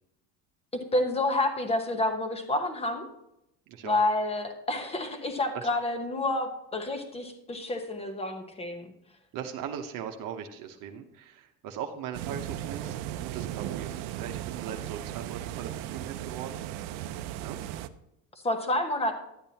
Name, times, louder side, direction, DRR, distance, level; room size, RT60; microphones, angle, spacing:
voice 1, 0.9-3.1 3.8-8.9 18.4-19.1, left 2 dB, 15° left, 6 dB, 1.0 m, -29 dB
voice 2, 9.3-16.6 17.0-17.1 17.4-17.6, right 8 dB, 60° right, 4 dB, 1.0 m, -39 dB
sound 1, 12.1-17.9, right 12 dB, 85° right, 0.6 m, -36 dB
11.5 x 8.8 x 2.9 m, 0.83 s
cardioid pair, 150°, 37 cm